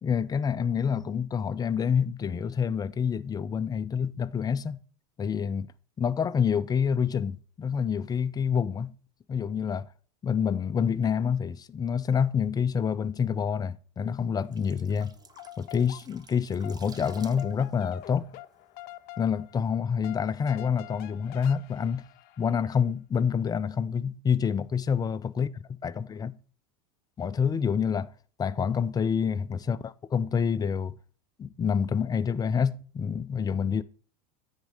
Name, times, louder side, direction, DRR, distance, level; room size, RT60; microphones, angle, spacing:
voice 1, 0.0-4.8 5.2-5.7 6.0-8.9 9.3-9.9 10.2-15.1 15.6-18.3 19.2-22.0 22.4-25.5 25.8-26.3 27.2-28.1 28.4-30.9 31.4-33.8, left 7 dB, 20° left, 0.4 m, -27 dB
sound 1, 14.2-19.1 19.4-19.6, right 5 dB, 20° right, 0.7 m, -52 dB
sound 2, 15.1-16.4 16.6-22.8, left 15 dB, 50° left, 0.7 m, -47 dB
9.4 x 4.5 x 4.8 m
hypercardioid pair, 105°, 20 cm